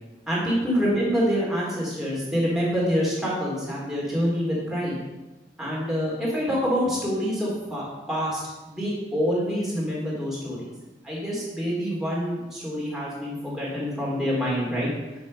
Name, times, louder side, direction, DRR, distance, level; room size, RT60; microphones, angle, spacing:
voice 1, 0.3-5.0 5.6-10.6 11.0-14.9, equal, 5° right, -6 dB, 3.0 m, -26 dB
9.6 x 6.5 x 5.3 m, 1.1 s
head